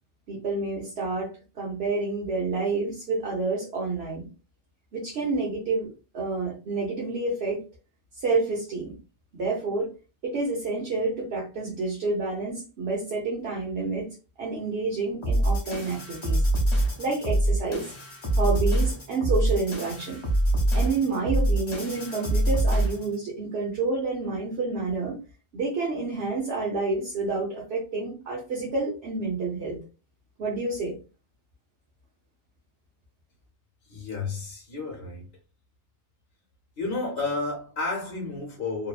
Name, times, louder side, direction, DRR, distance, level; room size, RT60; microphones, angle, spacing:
voice 1, 0.3-4.3 4.9-5.9 6.1-7.6 8.1-9.0 9.3-9.9 10.2-14.1 14.4-16.4 17.0-17.8 18.3-20.2 20.7-25.2 25.5-29.8 30.4-31.0, right 3 dB, 80° right, 1.1 m, -29 dB
sound 1, 15.2-23.2, right 1 dB, 30° left, 0.6 m, -25 dB
voice 2, 33.8-35.3 36.8-38.9, left 3 dB, 65° left, 1.0 m, -31 dB
2.8 x 2.1 x 2.3 m
omnidirectional pair, 1.0 m